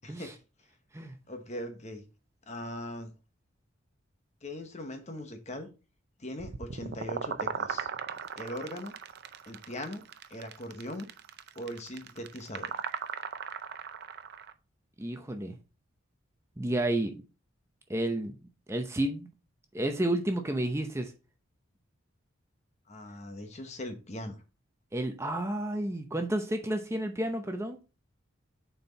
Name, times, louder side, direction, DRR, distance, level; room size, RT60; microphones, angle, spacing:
voice 1, 0.0-0.3 1.3-2.0 2.5-3.1 4.4-5.7 6.2-7.9 8.4-9.0 9.5-10.0 10.3-11.1 11.6-12.8 22.9-24.4, left 1 dB, 35° left, 1.0 m, -40 dB
sound 1, 6.4-14.5, right 6 dB, 55° right, 0.5 m, -38 dB
voice 2, 15.0-15.6 16.6-17.2 17.9-18.3 18.7-19.3 19.7-21.1 24.9-27.8, right 1 dB, 15° right, 0.6 m, -31 dB
6.8 x 4.4 x 4.0 m
head